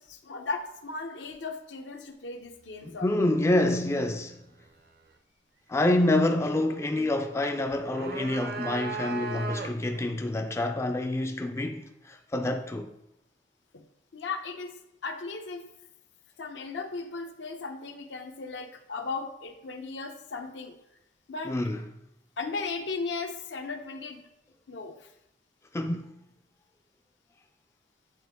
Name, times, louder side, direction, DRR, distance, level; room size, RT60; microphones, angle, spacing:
voice 1, 0.1-3.1 13.7-13.9 14.1-14.7 15.0-15.6 16.4-20.8 21.3-21.6 22.4-24.2 24.7-25.0, left 4 dB, 75° left, 0.7 m, -36 dB
voice 2, 2.8-4.4 5.7-12.9 21.4-21.9 25.7-26.1, left 1 dB, 15° left, 0.3 m, -27 dB
sound 1, 7.7-10.0, right 3 dB, 55° right, 0.5 m, -36 dB
8.4 x 3.7 x 3.5 m
head